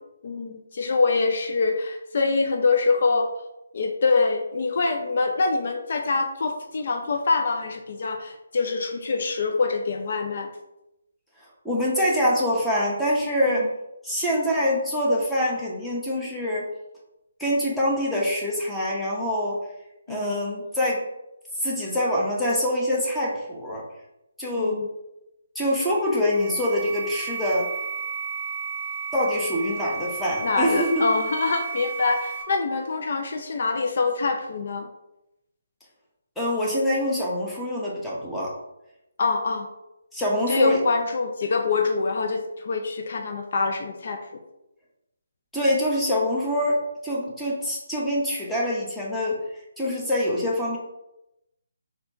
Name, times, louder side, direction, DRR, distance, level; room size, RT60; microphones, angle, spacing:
voice 1, 0.2-3.3 3.7-10.5 13.5-13.7 20.1-20.3 24.6-24.9 30.4-34.9 39.2-39.7 40.5-44.4, left 4 dB, 50° left, 4 dB, 0.5 m, -25 dB
voice 2, 11.6-13.7 14.0-16.7 17.4-19.6 20.1-21.1 21.6-23.8 24.4-24.8 25.5-27.7 29.1-30.9 36.4-38.5 40.1-40.8 45.5-49.4 49.8-50.8, left 1 dB, 5° left, -6 dB, 1.0 m, -25 dB
sound 1, 25.9-32.4, right 6 dB, 15° right, 1.6 m, -33 dB
4.2 x 2.7 x 4.4 m, 0.90 s
figure-of-eight pair, 150°, 0 cm